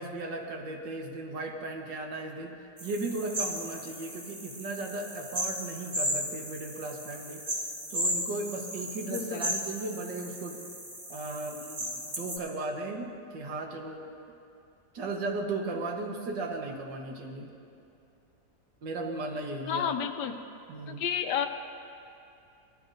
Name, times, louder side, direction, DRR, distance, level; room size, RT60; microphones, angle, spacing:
voice 1, 0.0-7.4 7.9-10.6 11.1-14.0 14.9-17.5 18.8-19.9 20.7-21.0, right 2 dB, 90° right, 2 dB, 1.9 m, -36 dB
sound 1, 2.8-12.4, equal, 30° right, 2.5 m, -35 dB
voice 2, 9.1-9.5 19.7-20.4 20.9-21.5, left 8 dB, 80° left, 7 dB, 1.3 m, -31 dB
19.5 x 13.0 x 2.6 m, 2.6 s
omnidirectional pair, 1.9 m